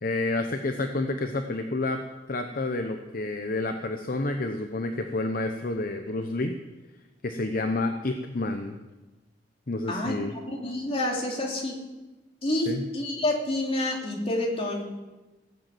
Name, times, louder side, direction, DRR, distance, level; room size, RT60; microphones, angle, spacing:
voice 1, 0.0-6.5 7.2-8.8 9.7-10.3 12.7-12.8, left 2 dB, 50° left, 6 dB, 0.9 m, -29 dB
voice 2, 10.5-11.8 12.4-14.8, left 1 dB, 35° left, -1 dB, 3.0 m, -28 dB
17.0 x 8.0 x 7.7 m, 1.1 s
head